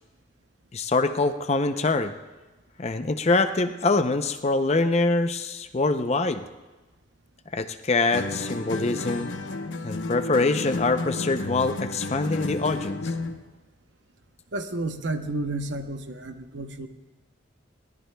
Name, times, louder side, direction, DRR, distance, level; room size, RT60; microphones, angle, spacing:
voice 1, 0.7-2.1 2.8-6.4 7.5-9.3 9.8-13.1, left 3 dB, 35° left, 8 dB, 0.5 m, -24 dB
sound 1, 8.1-13.4, left 2 dB, 75° left, 0.9 m, -32 dB
voice 2, 14.5-16.9, right 2 dB, 70° right, 7 dB, 0.9 m, -31 dB
21.5 x 18.0 x 2.2 m, 1.2 s
head